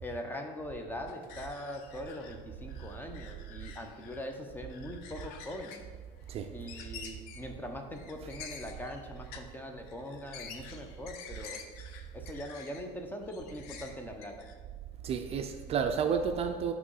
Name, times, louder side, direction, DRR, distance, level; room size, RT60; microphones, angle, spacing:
voice 1, 0.0-5.8 6.5-11.7 12.1-14.5, left 1 dB, 15° left, 0.6 m, -42 dB
sound 1, 1.1-2.4 2.7-4.3 4.7-5.9 6.2-6.3 6.6-7.5 7.9-9.5 9.8-12.9 13.2-14.5, left 6 dB, 85° left, 0.6 m, -49 dB
voice 2, 15.0-16.7, right 6 dB, 40° right, 0.4 m, -31 dB
6.1 x 3.1 x 5.5 m
cardioid pair, 120°, 16 cm